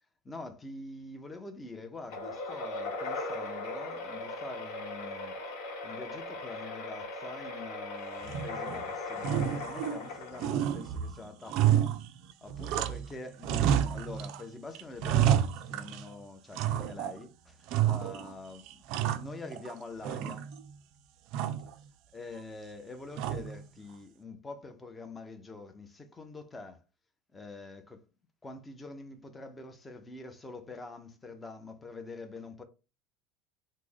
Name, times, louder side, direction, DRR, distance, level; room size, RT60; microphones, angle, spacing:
voice 1, 0.2-5.4 5.8-11.8 12.4-17.6 17.8-18.8 19.1-20.5 22.1-26.8 27.3-28.0 28.4-32.6, left 3 dB, 15° left, 0.5 m, -45 dB
sound 1, 2.1-10.9, left 2 dB, 70° left, 1.0 m, -39 dB
sound 2, 8.2-8.8 9.2-10.1 10.4-13.1 13.4-14.4 14.7-16.1 16.6-17.2 17.7-18.3 18.7-19.7 20.0-20.8 21.3-21.7 23.2-23.7, right 10 dB, 55° right, 0.3 m, -30 dB
3.1 x 2.0 x 3.6 m
supercardioid pair, 140°, 0 cm